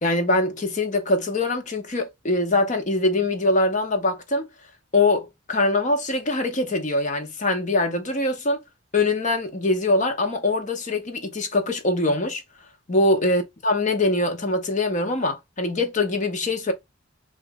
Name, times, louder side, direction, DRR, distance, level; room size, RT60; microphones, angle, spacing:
voice 1, 0.0-4.5 4.9-8.6 8.9-12.4 12.9-16.7, left 2 dB, 40° left, 0.9 m, -23 dB
3.0 x 2.5 x 3.4 m
head